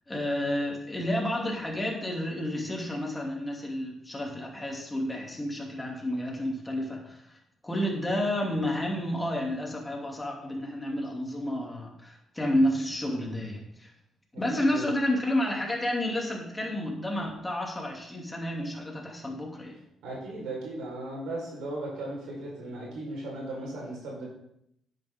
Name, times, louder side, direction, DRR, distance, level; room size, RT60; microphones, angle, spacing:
voice 1, 0.1-7.4 7.6-13.9 14.4-19.7, left 1 dB, 15° left, -1 dB, 2.7 m, -30 dB
voice 2, 14.5-14.8 20.0-24.2, right 2 dB, 85° right, -3 dB, 4.5 m, -36 dB
10.5 x 8.9 x 3.7 m, 0.76 s
cardioid pair, 90°, 0 cm